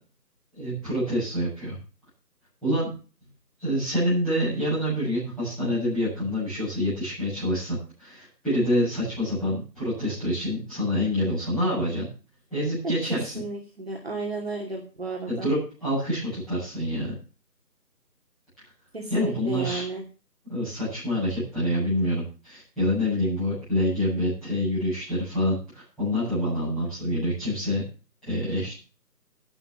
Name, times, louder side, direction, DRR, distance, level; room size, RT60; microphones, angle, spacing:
voice 1, 0.5-1.8 2.6-2.9 3.6-12.1 12.5-13.4 15.3-17.1 19.1-19.9 20.5-27.8 28.2-28.7, equal, ahead, -18 dB, 7.8 m, -27 dB
voice 2, 12.8-15.5 18.9-20.0, right 3 dB, 40° right, 0 dB, 2.7 m, -33 dB
12.0 x 10.0 x 7.3 m, 0.35 s
figure-of-eight pair, 175°, 49 cm